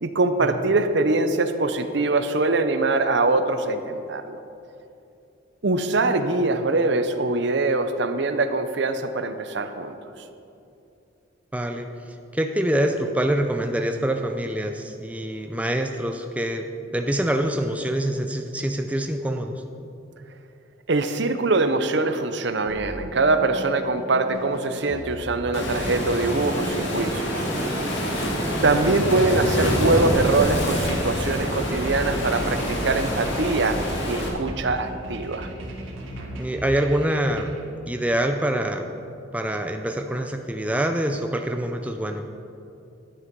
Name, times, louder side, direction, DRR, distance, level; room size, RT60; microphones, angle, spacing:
voice 1, 0.0-4.4 5.6-10.0 20.9-27.5 28.6-33.8 34.1-35.5, right 3 dB, 60° right, 9 dB, 0.7 m, -23 dB
voice 2, 11.5-11.9 12.3-19.6 34.5-34.6 36.4-37.6 37.9-38.9 39.3-42.3, right 1 dB, 5° right, 5 dB, 0.5 m, -25 dB
sound 1, 22.7-37.6, right 1 dB, 85° right, 1.9 m, -37 dB
Waves surf, 25.5-34.3, equal, 65° left, 2.1 m, -26 dB
11.5 x 9.4 x 5.3 m, 2.7 s
head